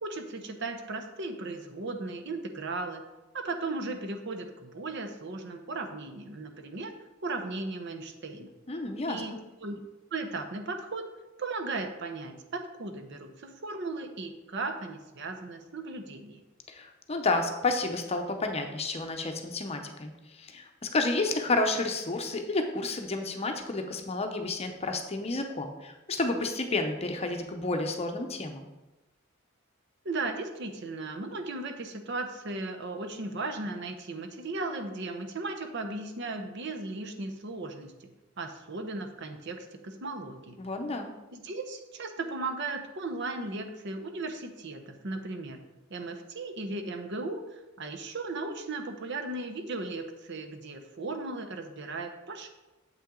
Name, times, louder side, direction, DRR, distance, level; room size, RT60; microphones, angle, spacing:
voice 1, 0.0-3.0 3.3-6.9 7.2-8.5 9.1-9.3 9.6-9.8 10.1-11.0 11.4-16.4 30.0-37.9 38.4-40.6 41.3-45.6 45.9-52.5, right 3 dB, 60° right, 6 dB, 0.8 m, -36 dB
voice 2, 8.7-9.2 16.7-20.1 20.4-28.7 40.6-41.1, left 2 dB, 30° left, 5 dB, 0.7 m, -30 dB
7.6 x 5.7 x 3.8 m, 1.1 s
head